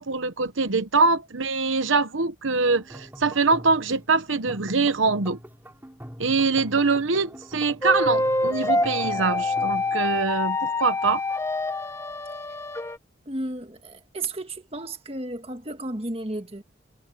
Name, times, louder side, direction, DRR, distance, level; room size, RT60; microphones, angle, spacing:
voice 1, 0.0-5.4 6.2-11.2, right 4 dB, 80° right, 1.0 m, -23 dB
sound 1, 2.7-10.3, equal, 10° right, 3.9 m, -43 dB
sound 2, 7.8-13.0, left 2 dB, 15° left, 1.4 m, -26 dB
voice 2, 13.2-16.6, right 2 dB, 30° right, 1.7 m, -33 dB
head